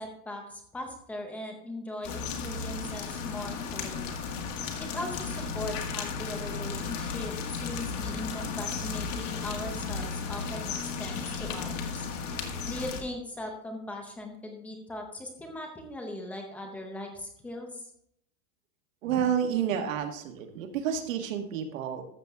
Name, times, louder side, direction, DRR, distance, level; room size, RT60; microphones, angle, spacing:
voice 1, 0.0-4.1 4.8-12.1 12.7-17.9, left 1 dB, 5° left, 2 dB, 0.6 m, -39 dB
sound 1, 2.0-13.0, left 5 dB, 55° left, 2.0 m, -34 dB
voice 2, 19.0-22.0, right 8 dB, 55° right, 5 dB, 1.8 m, -30 dB
13.5 x 7.3 x 3.6 m, 0.72 s
supercardioid pair, 170°, 45 cm